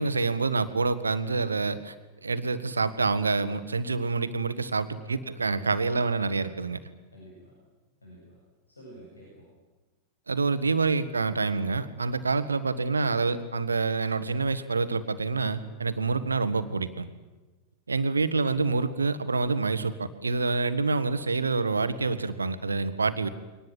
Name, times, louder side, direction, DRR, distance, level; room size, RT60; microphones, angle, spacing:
voice 1, 0.0-1.9 2.2-6.8 10.3-17.1 17.9-23.3, right 4 dB, 75° right, 12 dB, 1.4 m, -27 dB
voice 2, 5.0-5.5 7.1-7.6 8.0-8.4 8.7-9.5, equal, 80° left, -4 dB, 7.9 m, -50 dB
23.5 x 19.0 x 9.3 m, 1.2 s
figure-of-eight pair, 90°, 0 cm